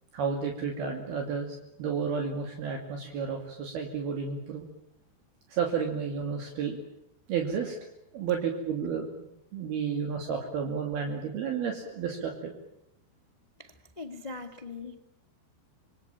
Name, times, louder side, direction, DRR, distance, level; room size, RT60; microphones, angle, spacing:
voice 1, 0.1-4.6 5.5-6.8 7.3-9.1 9.5-12.5, right 6 dB, 70° right, 3 dB, 4.5 m, -32 dB
voice 2, 13.6-15.0, left 3 dB, 55° left, 7 dB, 0.4 m, -41 dB
26.5 x 23.0 x 8.9 m, 0.80 s
omnidirectional pair, 4.7 m